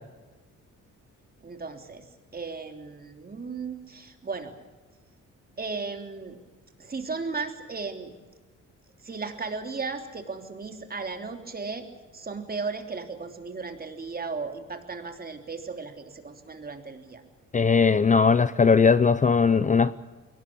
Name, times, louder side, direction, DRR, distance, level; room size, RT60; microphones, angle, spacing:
voice 1, 1.4-2.0 2.3-4.5 5.6-6.4 6.8-8.1 9.0-11.9 12.1-17.2, right 4 dB, 30° right, 6 dB, 3.2 m, -35 dB
voice 2, 17.5-19.9, left 5 dB, 25° left, 15 dB, 0.7 m, -19 dB
22.5 x 18.5 x 8.6 m, 1.2 s
cardioid pair, 90°, 30 cm